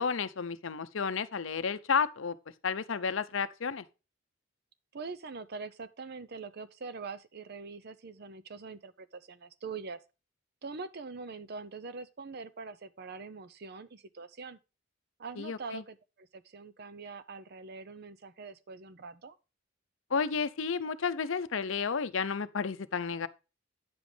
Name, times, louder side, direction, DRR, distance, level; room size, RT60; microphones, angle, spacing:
voice 1, 0.0-2.4 2.6-3.8 15.4-15.8 20.1-23.3, left 5 dB, 65° left, 0.6 m, -32 dB
voice 2, 4.9-10.0 10.6-14.6 15.2-19.4, right 4 dB, 50° right, 0.6 m, -43 dB
9.5 x 7.4 x 3.3 m
head